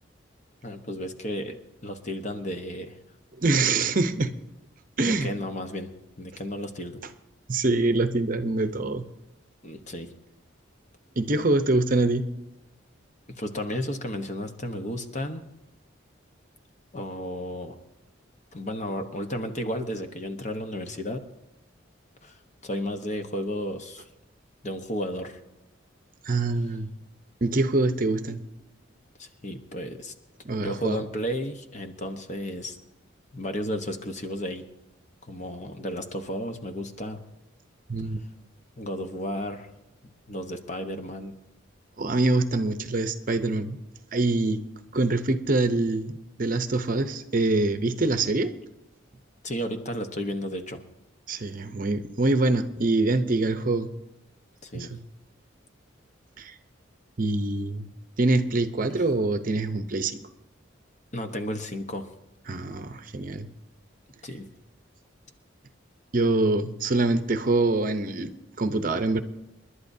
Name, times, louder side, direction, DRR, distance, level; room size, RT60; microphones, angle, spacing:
voice 1, 0.6-3.0 5.0-5.9 6.2-7.0 9.6-10.1 13.3-15.4 16.9-17.8 18.5-21.3 22.2-24.0 24.6-25.4 29.2-30.1 30.6-32.8 33.3-34.6 35.2-37.2 38.8-39.7 40.3-41.3 49.4-50.8 54.6-54.9 58.9-59.0 61.1-62.1 64.2-64.5, equal, 35° left, 6 dB, 1.0 m, -33 dB
voice 2, 3.4-4.3 5.0-5.3 7.5-9.1 11.2-12.2 26.2-26.9 27.4-28.4 30.4-31.0 37.9-38.2 42.0-43.8 44.1-44.6 44.9-46.1 46.4-48.5 51.3-53.9 54.7-55.0 56.4-56.6 57.2-57.9 58.2-60.2 62.5-63.5 66.1-68.3 68.6-69.2, right 2 dB, 45° right, 9 dB, 0.7 m, -24 dB
29.5 x 11.5 x 2.7 m, 0.94 s
head